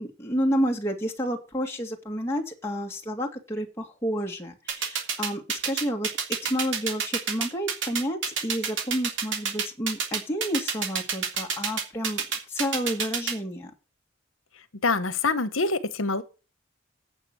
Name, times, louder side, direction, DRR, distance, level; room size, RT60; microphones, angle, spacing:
voice 1, 0.0-6.1 6.4-12.2 12.5-13.7, equal, 10° left, 2.1 m, -30 dB
sound 1, 4.7-13.3, right 6 dB, 60° right, 3.1 m, -27 dB
voice 2, 14.8-16.2, left 3 dB, 75° left, 1.2 m, -25 dB
9.1 x 6.1 x 7.9 m
head